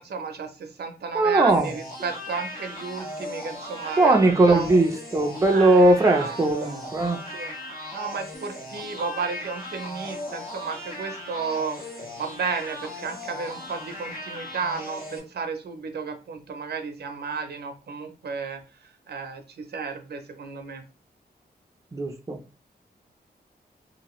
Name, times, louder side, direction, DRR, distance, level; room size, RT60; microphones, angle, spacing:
voice 1, 0.0-4.7 5.5-7.5 7.9-11.9 12.2-18.6 19.1-20.8, right 5 dB, 80° right, 0.6 m, -33 dB
voice 2, 1.1-1.7 4.0-7.2 21.9-22.4, right 2 dB, 20° right, 0.5 m, -19 dB
sound 1, 1.5-15.2, left 1 dB, 65° left, 1.4 m, -38 dB
2.8 x 2.6 x 3.0 m
wide cardioid pair, 120°, 17 cm